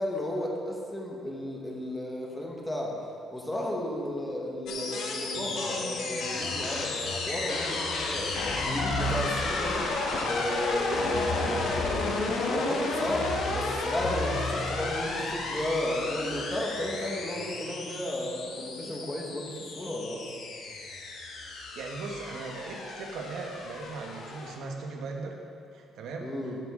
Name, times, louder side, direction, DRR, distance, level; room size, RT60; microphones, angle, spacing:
voice 1, 0.0-3.0 3.3-9.9 10.2-12.1 12.4-20.3 26.2-26.6, left 1 dB, 10° left, -2 dB, 1.4 m, -33 dB
sound 1, 4.7-24.6, left 3 dB, 60° left, 1.4 m, -33 dB
sound 2, 8.3-9.6 11.0-12.4 12.9-15.4, equal, 35° left, 2.0 m, -36 dB
voice 2, 21.7-25.4 25.7-26.5, right 3 dB, 65° right, 2 dB, 1.2 m, -38 dB
16.5 x 7.4 x 3.7 m, 2.3 s
cardioid pair, 170°, 0 cm